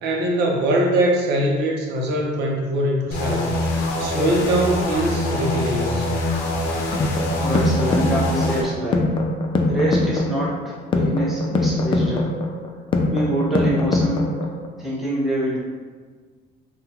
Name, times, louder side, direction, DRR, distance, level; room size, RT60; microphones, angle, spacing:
voice 1, 0.0-3.6 4.0-6.1, right 1 dB, 85° right, 0 dB, 0.7 m, -22 dB
sound 1, 3.1-8.6, left 1 dB, 85° left, 0.6 m, -24 dB
sound 2, 6.7-14.7, left 2 dB, 30° left, 0.3 m, -22 dB
voice 2, 7.3-9.1 9.7-12.3 13.1-14.3 14.8-15.6, right 1 dB, ahead, -8 dB, 0.9 m, -25 dB
3.8 x 2.3 x 2.7 m, 1.5 s
cardioid pair, 110°, 17 cm